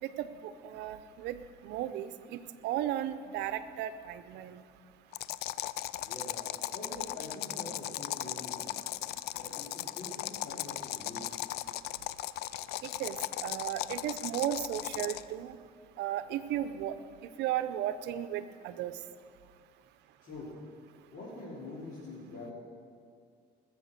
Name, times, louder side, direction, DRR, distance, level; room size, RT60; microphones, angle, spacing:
voice 1, 0.0-1.4 1.6-4.6 12.8-15.6 16.0-17.0 17.4-19.0, right 11 dB, 80° right, 12 dB, 0.7 m, -35 dB
sound 1, 5.1-15.3, left 15 dB, 75° left, 0.4 m, -37 dB
voice 2, 6.0-8.7 9.3-11.5 20.2-20.5 21.1-22.5, left 2 dB, 60° left, -8 dB, 3.7 m, -45 dB
20.0 x 7.1 x 6.7 m, 2.2 s
cardioid pair, 110°, 17 cm